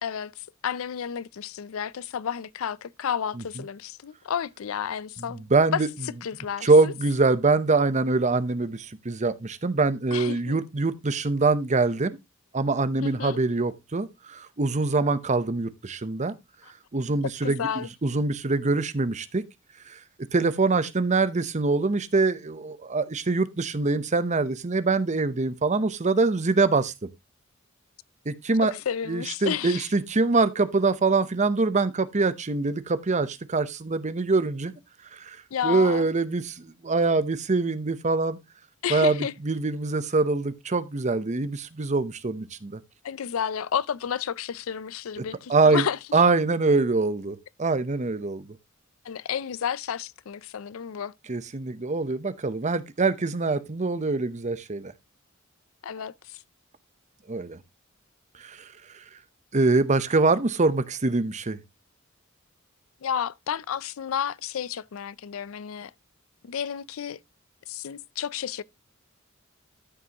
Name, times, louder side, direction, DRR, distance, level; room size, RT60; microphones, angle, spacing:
voice 1, 0.0-5.4 5.7-5.8 6.2-6.9 10.1-10.6 13.0-13.4 17.4-17.9 28.6-29.9 35.5-36.1 38.8-39.3 43.0-46.0 49.0-51.1 55.8-56.4 63.0-65.9 66.4-67.2 67.7-68.6, left 8 dB, 85° left, 0.4 m, -31 dB
voice 2, 5.3-5.9 6.6-12.2 12.5-16.3 16.9-19.4 19.9-20.0 20.3-27.1 28.3-28.7 29.1-34.7 35.1-35.4 35.6-38.4 38.9-42.8 45.5-45.8 46.1-48.6 51.3-54.9 57.3-57.6 58.4-58.7 59.5-61.6, right 3 dB, 35° right, 0.8 m, -24 dB
13.5 x 6.1 x 2.9 m
head